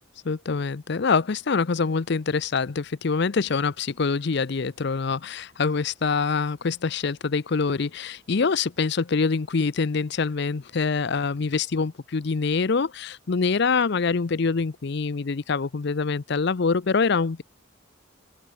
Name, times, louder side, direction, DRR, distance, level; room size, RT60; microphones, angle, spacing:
voice 1, 0.2-17.4, left 4 dB, 55° left, 0.5 m, -25 dB
open air
head